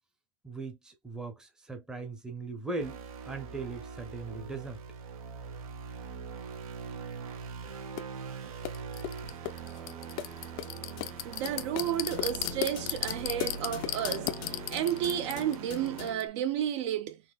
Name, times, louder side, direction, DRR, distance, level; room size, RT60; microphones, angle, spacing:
voice 1, 0.4-4.8, right 3 dB, 5° right, 0.7 m, -39 dB
sound 1, 2.8-16.1, right 5 dB, 80° right, 1.1 m, -42 dB
sound 2, 8.0-8.1 8.6-16.3, left 14 dB, 40° left, 0.4 m, -36 dB
voice 2, 11.2-17.2, right 10 dB, 55° right, 0.6 m, -32 dB
4.0 x 2.6 x 2.3 m
supercardioid pair, 160°, 18 cm